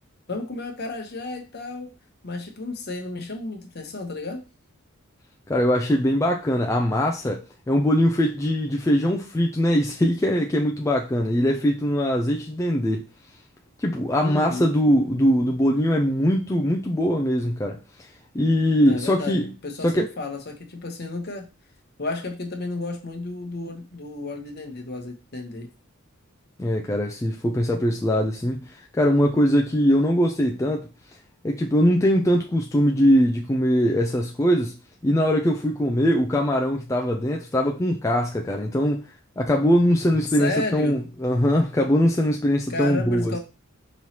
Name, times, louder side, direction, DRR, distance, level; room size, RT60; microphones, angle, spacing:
voice 1, 0.3-1.9 2.2-4.4 14.2-14.7 18.8-21.5 22.0-25.7 40.4-41.0 42.7-43.4, left 2 dB, 50° left, 0.9 m, -32 dB
voice 2, 5.5-13.0 13.8-18.1 18.3-19.5 19.8-20.1 26.6-30.9 31.4-34.7 35.0-39.0 39.4-43.4, equal, 15° left, 0.4 m, -21 dB
5.4 x 3.1 x 2.8 m
head